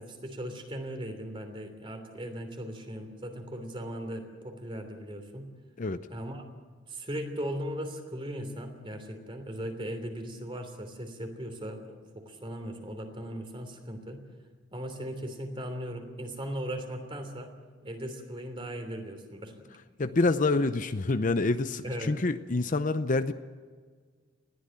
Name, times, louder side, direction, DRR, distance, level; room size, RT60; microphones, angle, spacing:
voice 1, 0.0-5.5 6.1-6.4 6.9-11.8 12.1-14.2 14.7-17.5 17.8-19.7 21.8-22.2, equal, 25° right, 6 dB, 3.2 m, -38 dB
voice 2, 20.0-23.3, left 3 dB, 45° left, 11 dB, 0.7 m, -27 dB
21.0 x 15.5 x 8.9 m, 1.5 s
head